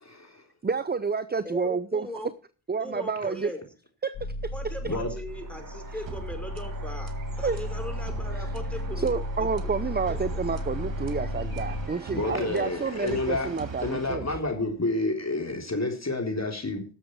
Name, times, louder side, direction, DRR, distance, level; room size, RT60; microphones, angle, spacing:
voice 1, 0.6-2.1 2.7-3.5 4.0-4.2 4.4-4.5 7.4-7.6 8.4-8.5 9.0-14.3, right 5 dB, 20° right, 0.7 m, -29 dB
voice 2, 1.4-2.3 2.8-3.6 4.5-9.5 10.1-10.2, left 1 dB, ahead, 5.1 m, -39 dB
sound 1, 4.1-11.9, left 1 dB, 80° left, 2.7 m, -34 dB
sound 2, 5.3-14.0, right 4 dB, 40° right, 2.4 m, -45 dB
sound 3, 6.1-15.0, right 6 dB, 60° right, 2.0 m, -44 dB
voice 3, 12.1-13.5 13.8-16.8, left 2 dB, 30° left, 3.7 m, -29 dB
17.5 x 7.3 x 4.7 m
supercardioid pair, 45°, 50 cm